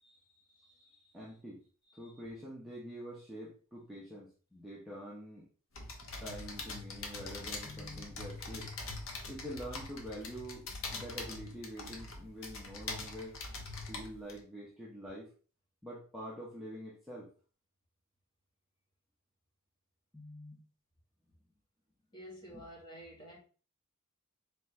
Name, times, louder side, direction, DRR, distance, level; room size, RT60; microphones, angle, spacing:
voice 1, 0.0-1.2 2.1-2.2 22.1-23.4, equal, 20° left, 1.4 m, -52 dB
voice 2, 1.1-1.6 1.9-5.5 6.2-8.7 9.3-10.7 10.9-13.3 13.9-15.3 15.8-17.3 20.1-20.6 22.5-22.6, equal, ahead, 0.7 m, -46 dB
sound 1, 5.7-14.4, left 3 dB, 65° left, 0.9 m, -43 dB
3.9 x 3.3 x 3.1 m
head